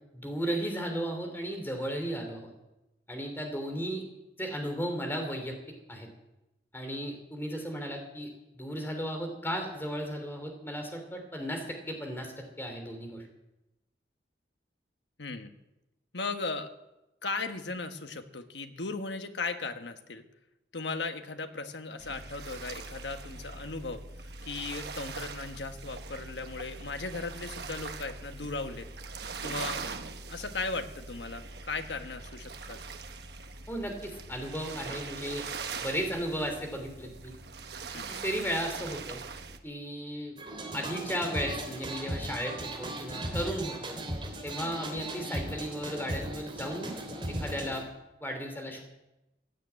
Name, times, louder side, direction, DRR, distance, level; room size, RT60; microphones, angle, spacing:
voice 1, 0.1-2.5 3.1-4.0 4.4-5.5 5.9-6.1 6.7-13.2 33.7-35.5 35.8-37.3 38.1-39.2 39.6-40.4 40.7-44.0 44.4-46.9 47.4-47.9 48.2-48.8, equal, 10° left, 3 dB, 2.9 m, -35 dB
voice 2, 15.2-15.5 16.1-16.7 17.2-20.2 20.7-24.0 24.4-28.9 29.4-29.8 30.3-32.8 37.9-38.1 44.5-44.7, left 3 dB, 90° left, 7 dB, 1.4 m, -37 dB
sound 1, 22.0-39.6, right 4 dB, 70° right, 1.2 m, -42 dB
sound 2, 40.4-47.8, right 1 dB, 30° right, 3.3 m, -37 dB
16.0 x 9.6 x 8.8 m, 0.96 s
head